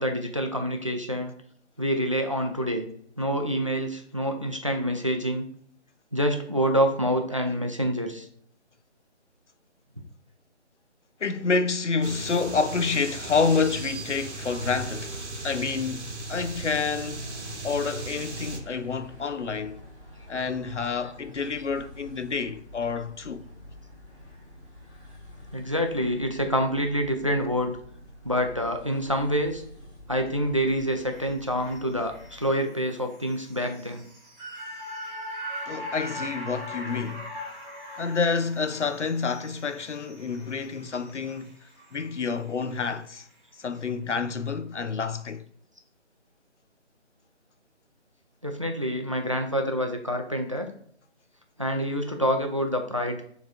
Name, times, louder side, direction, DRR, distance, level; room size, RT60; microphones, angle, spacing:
voice 1, 0.0-1.3 1.8-2.9 3.2-5.5 6.1-8.3 25.5-27.8 28.2-29.6 30.1-34.0 48.4-50.7 51.6-53.2, equal, 30° right, 0.4 m, -27 dB
voice 2, 11.2-17.3 17.6-19.8 20.3-23.4 35.7-37.3 38.0-41.5 41.9-43.3 43.6-45.4, left 5 dB, 90° left, 0.7 m, -28 dB
sound 1, 12.0-18.6, right 2 dB, 85° right, 1.1 m, -37 dB
sound 2, 15.7-32.5, left 1 dB, 10° left, 1.8 m, -48 dB
sound 3, 30.6-43.0 43.3-43.4, equal, 5° right, 1.4 m, -41 dB
7.0 x 3.1 x 2.5 m
figure-of-eight pair, 155°, 34 cm